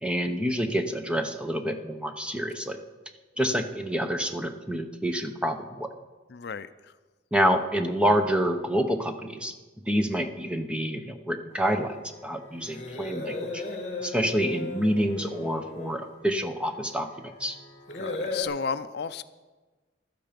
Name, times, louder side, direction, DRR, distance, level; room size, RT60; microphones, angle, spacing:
voice 1, 0.0-2.8 3.4-5.9 7.3-9.5 9.9-12.0 12.2-13.6 14.0-17.6, equal, 5° right, 6 dB, 0.8 m, -27 dB
voice 2, 6.3-6.9 17.9-19.2, left 5 dB, 55° left, 12 dB, 0.4 m, -34 dB
sound 1, 11.5-18.4, left 2 dB, 35° left, 2.2 m, -38 dB
14.5 x 12.0 x 5.1 m, 1.3 s
head